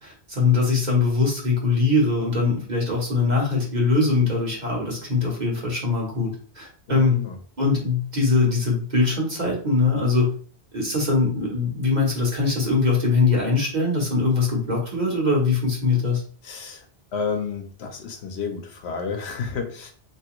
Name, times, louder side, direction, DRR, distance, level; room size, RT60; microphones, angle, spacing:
voice 1, 0.0-7.2 7.6-10.3 10.7-16.2, left 3 dB, 45° right, -2 dB, 1.3 m, -22 dB
voice 2, 6.9-7.4 16.4-16.9 17.1-19.9, left 5 dB, 85° left, 5 dB, 1.0 m, -31 dB
3.4 x 2.9 x 3.0 m, 0.43 s
omnidirectional pair, 1.1 m